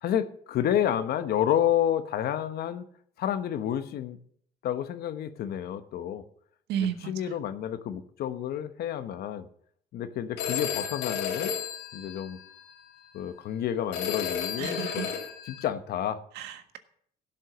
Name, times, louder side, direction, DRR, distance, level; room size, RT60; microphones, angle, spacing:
voice 1, 0.0-2.8 3.2-4.2 4.6-6.2 7.1-9.5 9.9-11.5 11.9-12.4 13.1-15.1 15.4-16.2, left 10 dB, 70° left, 10 dB, 1.2 m, -29 dB
voice 2, 6.7-7.3 14.6-15.1 16.3-16.8, right 9 dB, 80° right, 9 dB, 1.5 m, -33 dB
Telephone, 10.4-12.7 13.9-15.6, left 7 dB, 90° left, 3.3 m, -33 dB
16.0 x 7.5 x 6.2 m, 0.63 s
cardioid pair, 110°, 17 cm